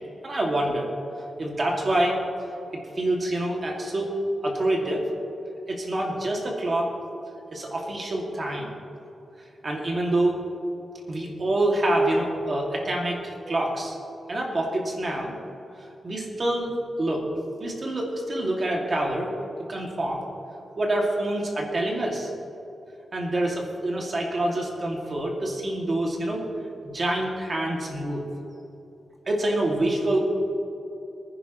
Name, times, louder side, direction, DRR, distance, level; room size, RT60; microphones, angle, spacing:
voice 1, 0.2-0.9 1.4-2.2 3.0-4.1 4.4-5.1 5.7-6.9 7.5-8.7 9.6-10.4 11.1-14.0 14.3-15.3 16.0-16.7 17.0-17.3 17.6-19.3 19.7-20.2 20.8-22.3 23.1-26.4 26.8-28.2 29.3-30.3, right 1 dB, 35° right, -1 dB, 2.2 m, -26 dB
24.5 x 10.0 x 3.0 m, 3.0 s
wide cardioid pair, 160°, 0 cm